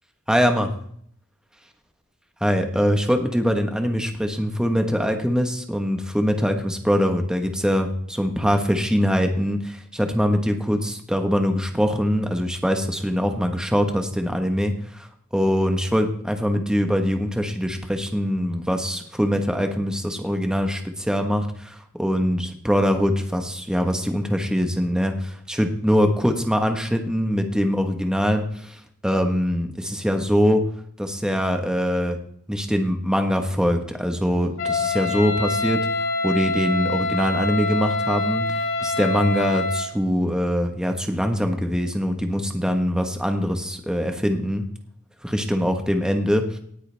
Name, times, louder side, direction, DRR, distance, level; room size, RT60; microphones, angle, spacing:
voice 1, 0.3-0.7 2.4-30.6 31.0-32.2 32.5-44.7 45.2-46.6, equal, 5° right, 5 dB, 1.3 m, -23 dB
Wind instrument woodwind instrument, 34.6-39.9, left 3 dB, 70° left, 4.2 m, -25 dB
18.5 x 9.6 x 3.5 m, 0.66 s
head